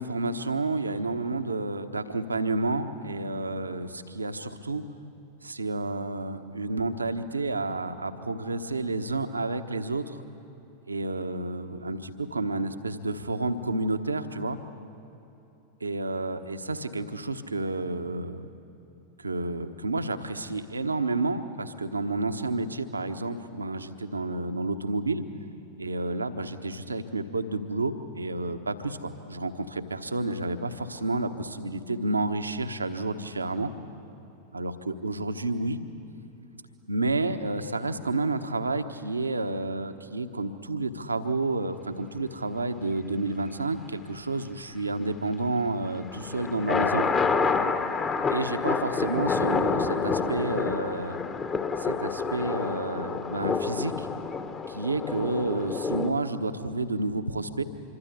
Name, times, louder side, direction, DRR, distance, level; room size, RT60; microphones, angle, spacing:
voice 1, 0.0-4.8 5.4-10.2 10.9-14.6 15.8-18.5 19.2-25.2 25.8-33.7 34.5-35.8 36.9-47.1 48.3-51.2 51.8-54.1 54.7-57.6, right 2 dB, 80° right, 8 dB, 1.2 m, -30 dB
sound 1, 45.9-56.1, left 5 dB, 25° left, 1.4 m, -28 dB
26.0 x 23.5 x 8.2 m, 2.9 s
figure-of-eight pair, 90°, 0 cm